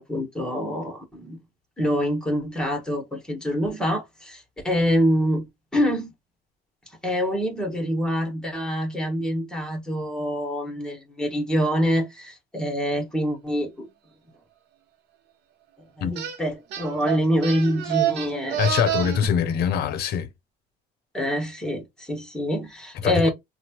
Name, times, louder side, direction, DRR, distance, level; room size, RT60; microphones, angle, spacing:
voice 1, 0.0-1.4 1.8-5.4 5.7-6.1 7.0-13.9 16.0-18.7 21.1-23.3, equal, 5° left, 1.4 m, -25 dB
sound 1, 16.2-16.4 16.7-19.3, right 12 dB, 75° right, 0.6 m, -28 dB
voice 2, 18.6-20.3 23.0-23.3, left 8 dB, 70° left, 0.7 m, -23 dB
2.8 x 2.3 x 2.9 m
cardioid pair, 110°, 17 cm